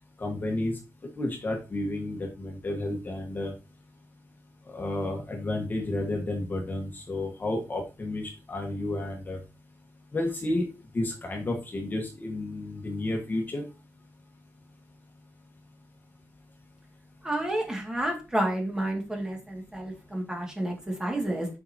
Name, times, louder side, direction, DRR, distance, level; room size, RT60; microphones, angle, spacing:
voice 1, 0.2-0.7 1.2-3.5 4.7-9.4 10.1-10.6 10.9-13.6, left 2 dB, 30° left, 2 dB, 1.4 m, -31 dB
voice 2, 17.2-21.5, right 1 dB, 10° right, 0 dB, 2.2 m, -30 dB
7.4 x 5.5 x 2.9 m, 0.29 s
wide cardioid pair, 160°, 6 cm